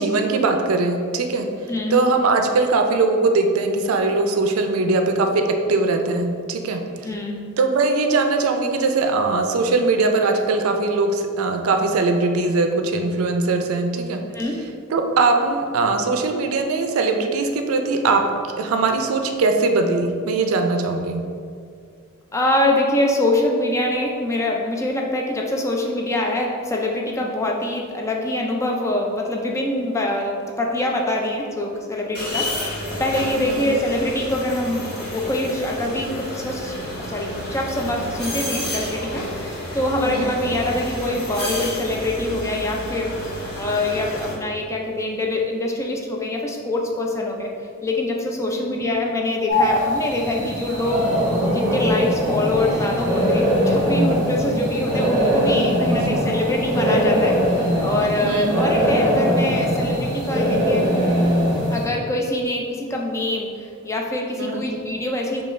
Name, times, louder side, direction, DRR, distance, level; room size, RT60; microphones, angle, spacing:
voice 1, 0.0-1.5 1.9-5.4 5.7-6.8 7.6-14.2 14.9-18.2 18.6-21.2 33.4-33.7 40.1-40.3 48.6-48.7 54.4-54.6 55.9-56.4 58.2-58.6 64.4-64.6, right 3 dB, 80° right, 4 dB, 0.4 m, -21 dB
voice 2, 1.7-2.0 7.0-7.4 14.3-14.6 22.3-43.2 43.6-47.5 47.8-51.1 51.5-60.8 61.7-65.4, left 1 dB, 15° left, 0 dB, 0.3 m, -24 dB
sound 1, 32.1-44.3, left 1 dB, 50° left, 1.2 m, -31 dB
sound 2, 49.5-61.8, equal, 15° right, 1.3 m, -21 dB
5.3 x 2.3 x 3.2 m, 2.3 s
head